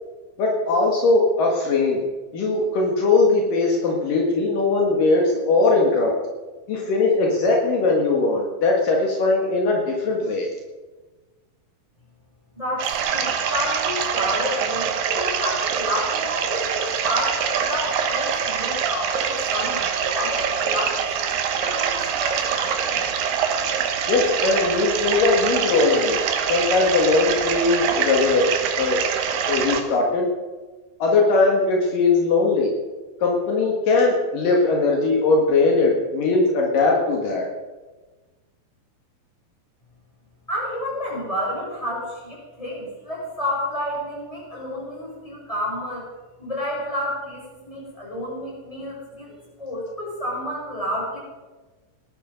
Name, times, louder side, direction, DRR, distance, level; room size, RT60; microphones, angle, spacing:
voice 1, 0.4-2.0 2.3-6.1 6.7-10.5 24.1-26.2 26.4-28.4 28.8-29.0 29.5-30.3 31.0-32.7 33.2-37.5, left 3 dB, 65° left, 0 dB, 3.3 m, -20 dB
voice 2, 12.5-23.0 40.5-46.1 46.4-51.2, left 1 dB, 10° left, -4 dB, 5.9 m, -30 dB
sound 1, 12.8-29.8, right 7 dB, 70° right, 2.9 m, -24 dB
18.5 x 12.0 x 5.2 m, 1.3 s
omnidirectional pair, 4.2 m